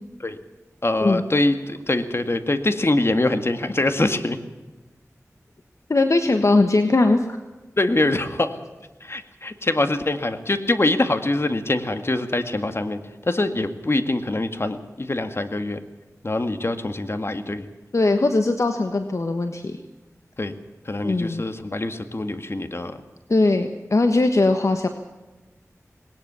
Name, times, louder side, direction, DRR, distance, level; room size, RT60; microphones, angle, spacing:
voice 1, 0.8-4.4 7.8-8.6 9.0-13.0 13.3-15.8 16.2-17.7 20.4-20.5 20.9-23.0, left 2 dB, 45° left, 9 dB, 1.9 m, -24 dB
voice 2, 5.9-7.2 17.9-19.8 21.0-21.4 23.3-24.9, left 2 dB, 60° left, 7 dB, 1.4 m, -20 dB
19.5 x 18.5 x 7.0 m, 1.2 s
wide cardioid pair, 50°, 6 cm